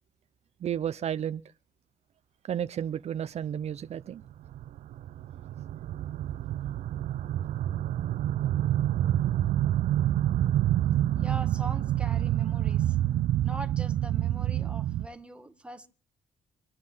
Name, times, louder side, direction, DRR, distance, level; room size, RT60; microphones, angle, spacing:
voice 1, 0.6-1.4 2.5-4.2, right 9 dB, 55° right, 0.7 m, -32 dB
sound 1, 4.2-15.1, right 12 dB, 90° right, 0.8 m, -27 dB
voice 2, 11.2-13.0 13.4-15.9, right 2 dB, 10° right, 2.0 m, -42 dB
25.5 x 9.9 x 5.6 m
cardioid pair, 105°, 13 cm